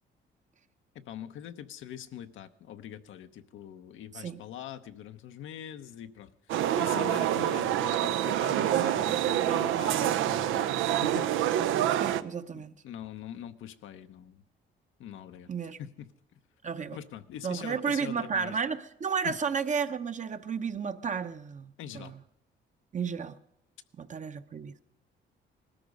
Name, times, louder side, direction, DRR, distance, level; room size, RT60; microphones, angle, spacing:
voice 1, 0.9-11.5 12.5-14.4 15.0-15.5 15.8-16.4 16.9-18.6 19.2-19.4 21.8-22.1, left 10 dB, 80° left, 0.9 m, -43 dB
sound 1, 6.5-12.2, right 11 dB, 85° right, 0.6 m, -27 dB
voice 2, 12.0-12.7 15.5-15.8 16.6-17.0 17.4-22.1 22.9-23.4 24.0-24.8, right 6 dB, 40° right, 0.8 m, -32 dB
19.5 x 13.0 x 5.3 m
cardioid pair, 90°, 20 cm